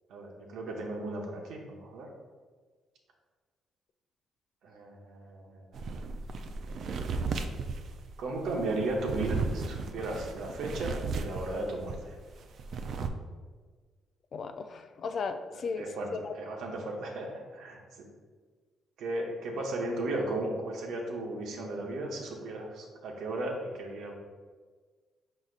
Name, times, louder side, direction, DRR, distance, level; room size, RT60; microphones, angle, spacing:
voice 1, 0.1-2.1 4.6-5.8 8.2-12.2 15.5-18.1 19.0-24.1, right 2 dB, 80° right, 1 dB, 0.8 m, -35 dB
sound 1, 5.7-12.0 12.3-13.1, right 4 dB, 65° right, 0.3 m, -35 dB
voice 2, 14.3-16.4, left 5 dB, 55° left, 8 dB, 0.3 m, -36 dB
5.0 x 4.0 x 2.4 m, 1.5 s
cardioid pair, 90°, 0 cm